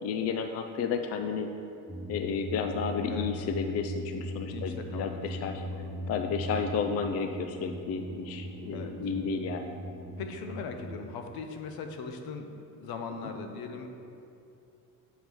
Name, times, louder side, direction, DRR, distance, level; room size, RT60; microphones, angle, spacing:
voice 1, 0.0-1.5 2.1-5.6 6.1-9.7, left 5 dB, 40° left, 6 dB, 0.4 m, -32 dB
sound 1, 1.9-11.0, equal, ahead, 0.7 m, -39 dB
voice 2, 4.5-5.9 8.7-9.0 10.2-13.9, left 5 dB, 70° left, 5 dB, 0.8 m, -40 dB
7.3 x 4.7 x 5.2 m, 2.7 s
cardioid pair, 120°, 38 cm